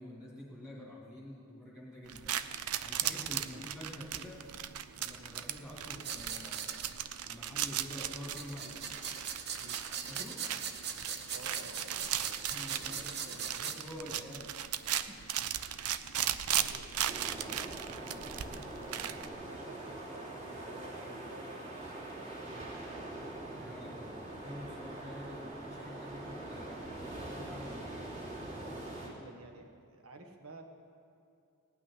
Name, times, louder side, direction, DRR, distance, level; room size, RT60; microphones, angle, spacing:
voice 1, 0.0-2.3 2.8-4.4 5.0-6.7 7.2-8.8 10.1-10.4 12.5-15.2 17.7-19.3 23.6-28.1, left 1 dB, ahead, -5 dB, 2.3 m, -48 dB
sound 1, 2.1-19.3, right 10 dB, 85° right, 0.6 m, -37 dB
voice 2, 3.0-3.6 9.5-9.8 11.3-12.4 12.7-13.7 16.5-18.5 19.3-23.3 29.0-30.6, right 2 dB, 70° right, 3 dB, 1.4 m, -53 dB
sound 2, 6.0-6.9 8.2-13.8, right 7 dB, 50° right, 0.9 m, -40 dB
sound 3, 17.1-29.1, right 2 dB, 30° right, 3.1 m, -43 dB
17.5 x 6.1 x 9.8 m, 2.5 s
head